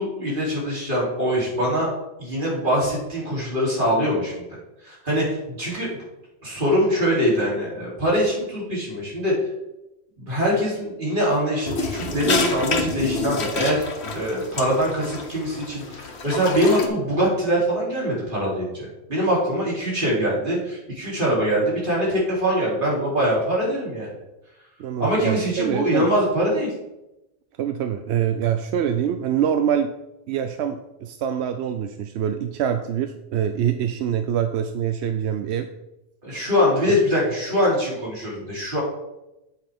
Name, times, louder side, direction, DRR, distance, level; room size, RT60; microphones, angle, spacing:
voice 1, 0.0-1.9 2.2-4.5 4.8-5.9 6.4-9.3 10.2-13.8 14.1-24.1 25.0-26.7 36.2-38.8, equal, 50° right, -5 dB, 3.3 m, -23 dB
sound 1, 11.7-16.9, left 4 dB, 85° left, 1.3 m, -28 dB
voice 2, 24.8-26.1 27.6-29.9 30.3-35.7 36.9-37.0, right 9 dB, 90° right, 8 dB, 0.8 m, -25 dB
9.1 x 7.3 x 3.5 m, 0.92 s
omnidirectional pair, 1.1 m